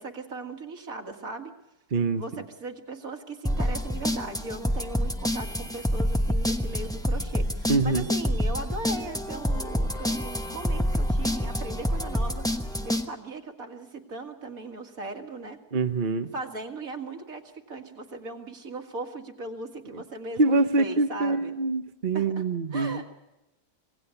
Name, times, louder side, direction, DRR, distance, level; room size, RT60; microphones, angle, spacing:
voice 1, 0.0-1.5 2.2-12.5 12.8-15.6 16.3-21.5 22.1-22.4 22.7-23.1, right 2 dB, 65° right, 4 dB, 2.4 m, -38 dB
voice 2, 1.9-2.4 7.7-8.1 15.7-16.3 20.4-23.2, right 3 dB, 40° right, 7 dB, 1.0 m, -25 dB
sound 1, 3.4-13.0, equal, 5° left, 0.7 m, -27 dB
26.0 x 18.5 x 7.0 m, 0.97 s
omnidirectional pair, 1.6 m